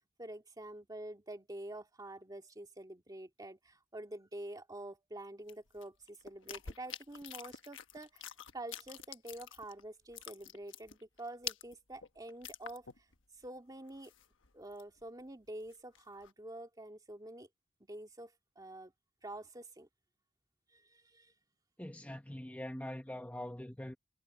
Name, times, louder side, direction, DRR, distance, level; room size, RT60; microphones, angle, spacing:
voice 1, 0.2-12.9 13.4-14.1 14.5-17.5 17.8-18.9 19.2-19.9 20.7-21.3, right 1 dB, 20° right, 2.2 m, -47 dB
sound 1, 5.5-9.8 10.1-13.2 13.4-13.5 13.9-15.0 15.5-16.3, left 9 dB, 70° left, 1.3 m, -47 dB
voice 2, 21.8-24.0, left 1 dB, 10° left, 1.2 m, -43 dB
head